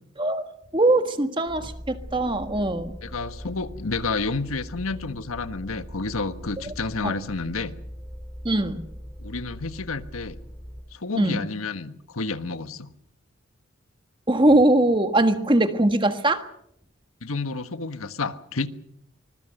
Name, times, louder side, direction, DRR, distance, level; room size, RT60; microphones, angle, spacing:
voice 1, 0.7-3.0 8.4-8.8 11.1-11.5 14.3-16.4, right 1 dB, 25° right, 8 dB, 1.6 m, -21 dB
sound 1, 1.5-10.8, equal, 10° left, 2.9 m, -41 dB
voice 2, 3.0-7.7 9.2-10.3 10.9-12.9 17.2-18.7, left 3 dB, 90° left, 10 dB, 1.4 m, -30 dB
25.0 x 21.5 x 6.6 m, 0.71 s
head